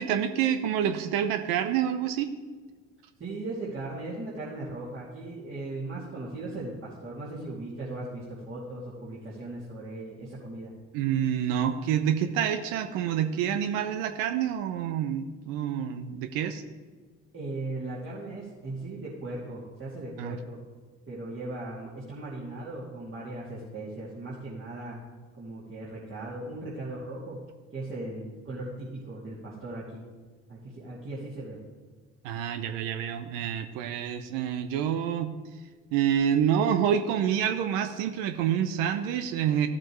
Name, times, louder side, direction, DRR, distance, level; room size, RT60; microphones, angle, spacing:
voice 1, 0.0-2.3 10.9-16.6 20.2-20.4 32.2-35.3 35.9-39.7, right 9 dB, 75° right, 9 dB, 0.7 m, -27 dB
voice 2, 3.2-10.7 17.3-20.6 21.1-25.0 25.4-27.4 27.7-30.0 30.5-31.6, right 2 dB, 35° right, -7 dB, 2.5 m, -38 dB
14.0 x 7.5 x 3.1 m, 1.4 s
hypercardioid pair, 55°, 34 cm